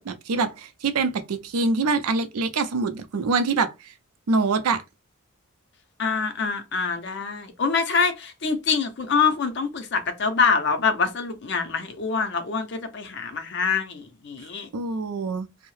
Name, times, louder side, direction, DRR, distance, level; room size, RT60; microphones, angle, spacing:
voice 1, 0.0-3.9 4.3-4.8 14.7-15.5, right 4 dB, 85° right, 0.5 m, -25 dB
voice 2, 6.0-14.7, left 5 dB, 50° left, 0.5 m, -25 dB
2.7 x 2.0 x 3.1 m
head